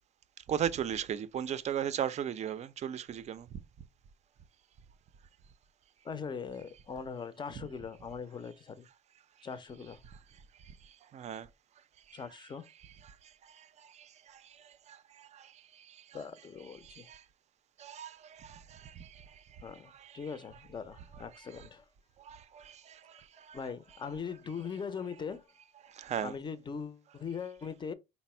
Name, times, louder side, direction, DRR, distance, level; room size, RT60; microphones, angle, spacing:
voice 1, 0.5-3.5 10.1-10.2 10.8-11.5 12.1-12.2 13.0-13.1 13.4-16.2 16.8-17.2 17.8-20.2 21.5-21.7 22.2-23.6 25.8-26.3, right 9 dB, 40° right, 0.4 m, -38 dB
voice 2, 6.0-8.9 9.4-10.0 12.1-12.7 16.1-17.1 19.6-21.8 23.5-25.5 26.2-27.9, left 6 dB, 25° left, 0.5 m, -41 dB
4.1 x 2.0 x 4.2 m
cardioid pair, 110°, 17 cm